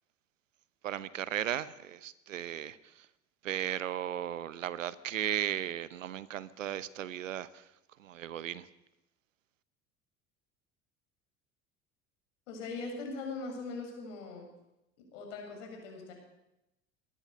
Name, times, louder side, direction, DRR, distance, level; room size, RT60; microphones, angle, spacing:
voice 1, 0.8-3.1 3.4-7.6 8.0-8.7, right 11 dB, 80° right, 18 dB, 0.9 m, -36 dB
voice 2, 12.5-14.5 15.1-16.1, left 3 dB, 70° left, 2 dB, 6.9 m, -40 dB
22.5 x 18.0 x 6.6 m, 0.91 s
figure-of-eight pair, 65°, 39 cm